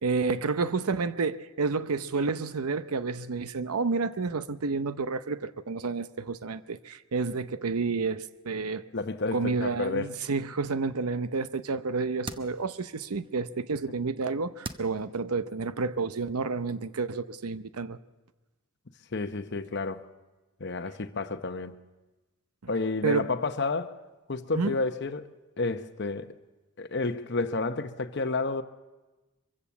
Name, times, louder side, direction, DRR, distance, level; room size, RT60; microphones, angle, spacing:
voice 1, 0.0-8.8 9.3-18.0 22.6-22.7 23.0-23.2 24.5-24.7, right 4 dB, 90° right, 0.7 m, -30 dB
voice 2, 8.9-10.1 19.1-20.0 20.6-21.8 22.7-24.0 24.3-25.3 25.6-26.3 26.8-28.6, left 3 dB, 50° left, 0.8 m, -30 dB
sound 1, 9.5-15.1, right 2 dB, 25° right, 0.8 m, -47 dB
24.0 x 15.5 x 7.2 m
head